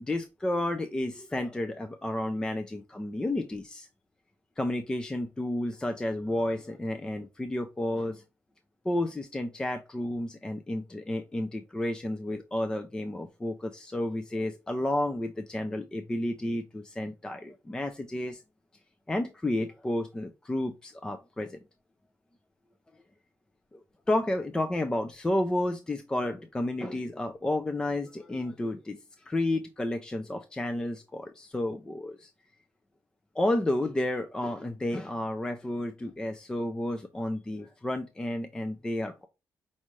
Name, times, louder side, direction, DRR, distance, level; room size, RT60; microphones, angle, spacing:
voice 1, 0.0-3.9 4.6-8.2 8.9-18.4 19.1-21.6 23.7-23.8 24.1-29.0 29.3-32.3 33.4-39.3, left 1 dB, 15° left, 6 dB, 0.4 m, -31 dB
5.3 x 2.4 x 3.1 m, 0.27 s
cardioid pair, 135°, 6 cm